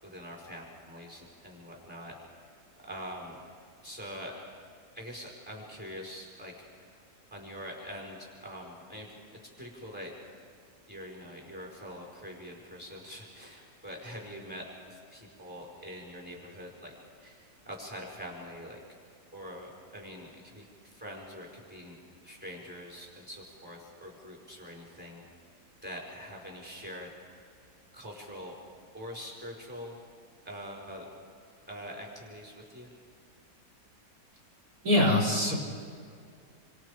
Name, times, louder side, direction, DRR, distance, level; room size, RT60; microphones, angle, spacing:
voice 1, 0.0-2.1 2.8-3.4 3.8-4.4 4.9-6.9 7.3-10.1 10.9-16.9 17.2-18.8 19.3-22.0 22.2-25.2 25.8-27.1 27.6-28.6 28.9-30.0 30.4-31.1 31.7-32.9, equal, 5° right, -1 dB, 4.7 m, -44 dB
voice 2, 34.8-35.5, left 1 dB, 60° right, -3 dB, 3.8 m, -23 dB
28.5 x 25.0 x 5.0 m, 2.2 s
omnidirectional pair, 1.8 m